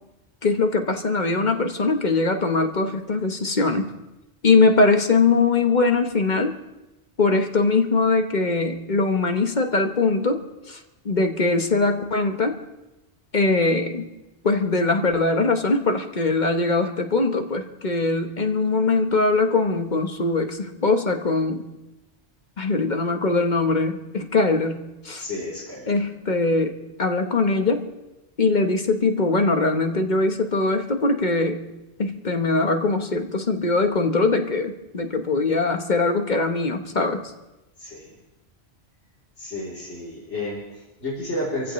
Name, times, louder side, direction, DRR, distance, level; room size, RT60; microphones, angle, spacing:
voice 1, 0.4-3.9 4.4-6.6 7.2-10.4 10.7-10.8 11.0-12.6 13.3-14.1 14.4-21.7 22.6-25.2 25.9-27.9 28.4-31.6 32.0-37.3, left 3 dB, 45° left, 5 dB, 1.2 m, -21 dB
voice 2, 25.2-25.9 37.8-38.2 39.4-41.7, left 1 dB, 85° left, -6 dB, 3.8 m, -31 dB
28.0 x 15.5 x 3.2 m, 1.0 s
omnidirectional pair, 1.1 m